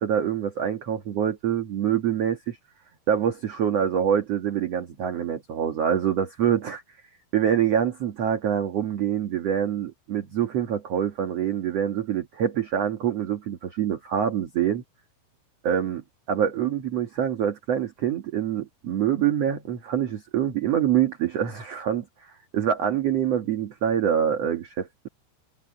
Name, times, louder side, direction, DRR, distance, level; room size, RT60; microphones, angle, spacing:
voice 1, 0.0-2.6 3.1-6.8 7.3-14.8 15.6-16.0 16.3-25.1, right 9 dB, 50° right, 2.2 m, -25 dB
omnidirectional pair, 4.5 m